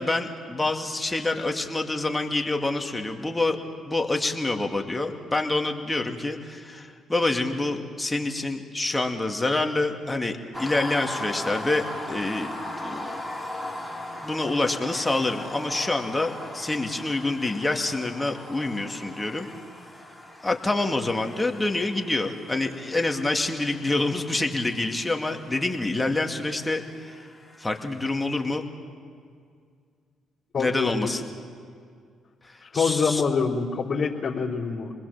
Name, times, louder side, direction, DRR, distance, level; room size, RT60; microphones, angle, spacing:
voice 1, 0.0-3.6 3.9-12.5 12.8-13.1 14.2-19.5 20.4-27.3 27.6-28.6 30.6-31.2 32.4-33.2, left 2 dB, 15° left, 3 dB, 2.5 m, -27 dB
sound 1, 10.5-27.8, left 1 dB, 5° right, 4.3 m, -39 dB
voice 2, 30.5-31.1 32.6-34.9, left 5 dB, 50° left, -9 dB, 3.7 m, -25 dB
28.0 x 20.5 x 7.5 m, 2.2 s
supercardioid pair, 65°, 0 cm